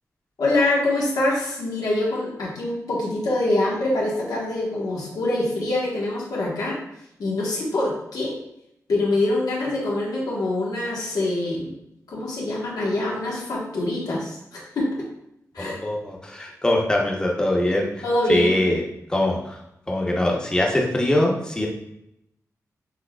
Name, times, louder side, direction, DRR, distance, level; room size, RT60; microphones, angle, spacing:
voice 1, 0.4-6.8 7.2-8.4 8.9-11.7 12.1-15.1 15.5-15.8 18.0-18.6, left 2 dB, 90° left, -4 dB, 1.2 m, -24 dB
voice 2, 15.6-18.0 18.3-18.8 19.1-19.6 19.9-21.7, left 1 dB, 15° left, -1 dB, 0.8 m, -22 dB
6.4 x 3.4 x 2.3 m, 0.80 s
wide cardioid pair, 135°, 6 cm